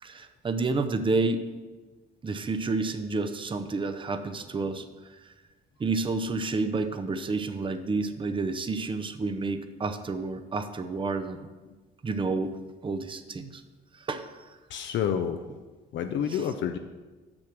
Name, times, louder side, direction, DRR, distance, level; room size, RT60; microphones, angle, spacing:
voice 1, 0.0-1.5 2.2-4.8 5.8-11.5 12.0-12.5 12.8-13.6 14.0-14.3, right 3 dB, 25° right, 8 dB, 0.6 m, -30 dB
voice 2, 14.7-15.4 15.9-16.8, left 8 dB, 70° left, 7 dB, 0.5 m, -29 dB
6.4 x 6.1 x 6.0 m, 1.3 s
cardioid pair, 90°, 20 cm